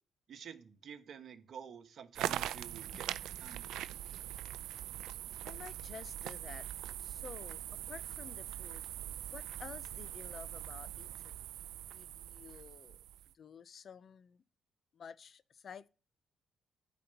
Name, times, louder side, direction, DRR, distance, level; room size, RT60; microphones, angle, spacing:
voice 1, 0.3-3.1 3.4-3.8, right 7 dB, 60° right, 1.2 m, -50 dB
sound 1, 2.2-13.3, right 12 dB, 85° right, 0.4 m, -42 dB
voice 2, 5.4-6.7 7.0-7.6 7.9-8.9 9.3-11.5 11.9-13.0 13.3-14.4 14.9-15.9, left 7 dB, 50° left, 0.6 m, -51 dB
9.2 x 4.3 x 6.7 m
cardioid pair, 90°, 0 cm